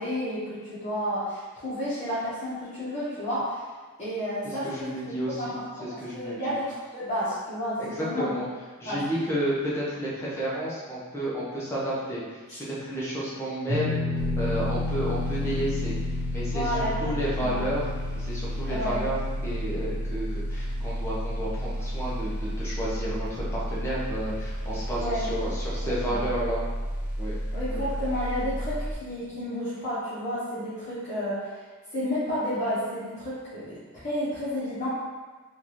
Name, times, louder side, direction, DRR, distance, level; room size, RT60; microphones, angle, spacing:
voice 1, 0.0-3.6 4.0-4.6 5.4-5.5 6.1-6.6 6.9-8.3 8.8-9.0 12.5-12.6 16.5-17.6 18.7-19.0 24.9-25.3 26.0-26.2 27.5-31.4 31.9-34.9, equal, 30° left, -13 dB, 1.2 m, -31 dB
voice 2, 4.4-6.4 7.8-8.4 8.8-14.0 14.4-15.9 16.3-17.8 18.1-26.6 27.2-27.3 27.7-27.8, right 1 dB, 10° left, -8 dB, 0.8 m, -31 dB
sound 1, 13.7-25.9 26.2-26.4 28.1-28.2, left 4 dB, 80° right, 1.1 m, -35 dB
sound 2, 14.2-28.9, equal, 5° right, 0.4 m, -32 dB
3.8 x 2.6 x 3.1 m, 1.3 s
head